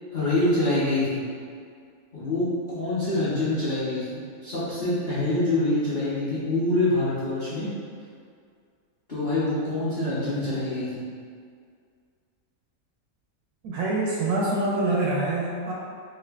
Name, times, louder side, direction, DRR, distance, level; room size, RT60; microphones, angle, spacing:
voice 1, 0.1-1.2 2.1-7.7 9.1-11.0, left 2 dB, 40° left, -12 dB, 0.7 m, -25 dB
voice 2, 13.6-15.7, right 2 dB, 70° right, -3 dB, 1.0 m, -25 dB
4.7 x 2.4 x 2.3 m, 2.2 s
omnidirectional pair, 1.8 m